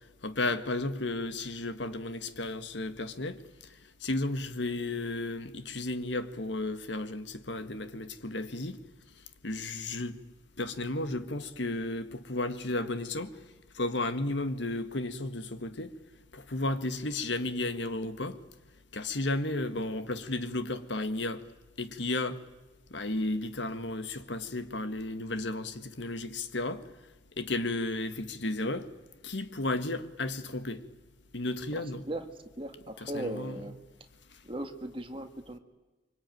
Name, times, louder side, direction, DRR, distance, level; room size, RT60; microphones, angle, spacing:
voice 1, 0.2-3.4 4.0-8.8 9.4-10.2 10.6-13.3 13.7-15.9 16.3-18.4 18.9-21.4 21.8-22.4 22.9-26.8 27.4-28.9 29.2-30.8 31.3-32.0 33.0-33.6, left 2 dB, 70° left, 1.7 m, -33 dB
voice 2, 31.7-32.3 32.6-33.8 34.4-35.6, right 1 dB, 25° right, 1.9 m, -38 dB
25.0 x 24.5 x 9.3 m
head